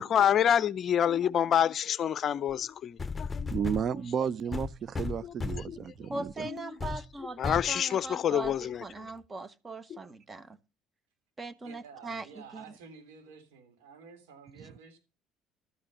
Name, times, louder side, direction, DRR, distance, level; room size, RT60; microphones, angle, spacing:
voice 1, 0.0-3.5 5.2-5.3 5.7-5.8 6.5-6.6 7.4-8.8 9.9-10.0, left 9 dB, 50° left, 0.5 m, -27 dB
sound 1, 2.5-2.6 3.0-3.9 4.5-5.8 6.3-6.4 6.8-7.0 7.4-7.7 8.4-8.5, left 4 dB, 20° left, 0.9 m, -35 dB
voice 2, 3.5-6.5, right 7 dB, 50° right, 0.5 m, -33 dB
voice 3, 6.1-10.6 11.4-12.6, right 3 dB, 25° right, 1.2 m, -40 dB
voice 4, 11.6-15.0, right 5 dB, 80° right, 3.2 m, -51 dB
12.5 x 8.7 x 5.4 m
hypercardioid pair, 65°, 0 cm